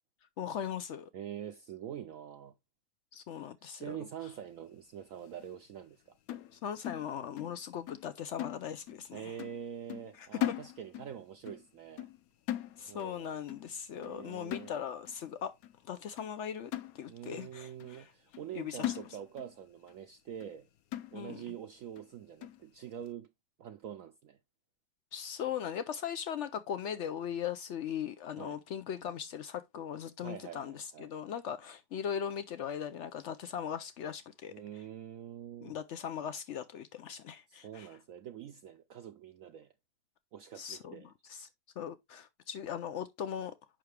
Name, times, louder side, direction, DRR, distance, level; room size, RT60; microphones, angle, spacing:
voice 1, 0.4-1.1 3.1-4.0 6.5-9.3 10.2-10.5 12.8-15.5 15.8-18.1 18.5-19.0 21.1-21.5 25.1-34.5 35.6-37.9 40.6-41.0 41.3-41.5 41.8-43.5, left 8 dB, 90° left, 0.6 m, -39 dB
voice 2, 1.1-2.5 3.7-6.0 9.1-12.1 12.9-13.4 14.0-14.7 17.1-20.7 21.1-23.3 23.6-24.4 28.4-28.6 30.2-31.1 34.5-35.8 37.5-39.7 40.3-41.1, right 9 dB, 70° right, 0.8 m, -45 dB
sound 1, 6.3-7.6 7.9-8.1 8.4-9.1 9.4-9.6 9.9-11.2 11.5-11.7 12.0-12.2 12.5-13.2 13.5-13.7 14.0-14.2 14.5-15.1 15.6-15.7 16.2-16.3 16.7-17.4 17.8-17.9 18.3-18.5 18.8-19.6 19.9-20.0 20.4-20.5 20.9-21.5 22.0-22.1 22.4-22.6, left 13 dB, 70° left, 0.9 m, -39 dB
7.4 x 5.8 x 3.2 m
omnidirectional pair, 1.9 m